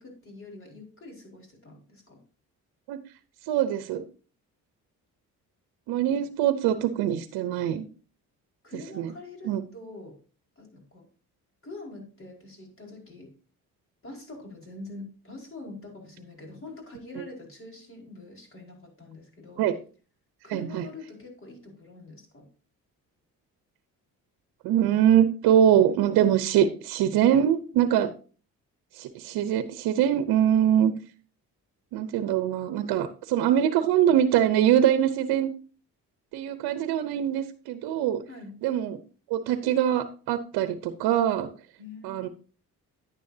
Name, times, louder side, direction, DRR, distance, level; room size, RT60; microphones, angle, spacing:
voice 1, 0.0-2.2 8.6-10.1 10.6-11.1 11.6-13.3 14.0-19.6 20.4-22.5 38.3-38.6 41.8-42.3, left 2 dB, 35° left, 1 dB, 4.8 m, -44 dB
voice 2, 3.5-4.0 5.9-7.9 9.0-9.1 9.4-9.6 19.6-19.7 20.5-20.8 24.6-28.1 29.0-30.9 31.9-35.5 36.3-38.2 38.6-39.0 39.3-41.5 42.0-42.3, right 10 dB, 85° right, 11 dB, 0.8 m, -23 dB
10.5 x 9.5 x 2.7 m, 0.38 s
supercardioid pair, 70°, 37 cm